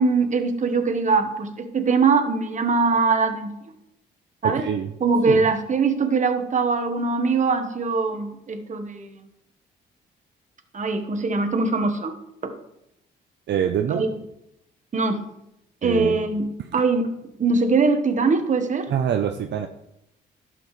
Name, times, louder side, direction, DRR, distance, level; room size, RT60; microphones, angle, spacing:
voice 1, 0.0-3.5 4.4-4.6 5.0-9.1 10.7-12.1 12.4-12.5 13.9-14.1 14.9-15.3 15.8-16.4 16.7-17.1 17.4-18.9, right 4 dB, 40° right, 6 dB, 1.2 m, -22 dB
voice 2, 4.4-4.9 5.3-5.4 13.5-14.1 15.8-16.2 18.9-19.7, right 8 dB, 60° right, 5 dB, 0.6 m, -25 dB
11.5 x 7.7 x 3.2 m, 0.83 s
cardioid pair, 90°, 20 cm